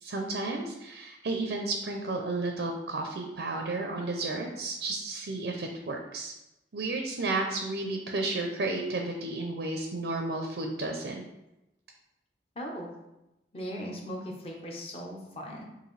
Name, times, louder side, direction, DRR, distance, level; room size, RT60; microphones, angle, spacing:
voice 1, 0.0-6.3 6.7-11.2, right 2 dB, 75° right, 3 dB, 0.5 m, -32 dB
voice 2, 12.5-12.9 13.5-15.6, equal, 35° left, -1 dB, 0.9 m, -38 dB
6.4 x 2.6 x 3.2 m, 0.93 s
head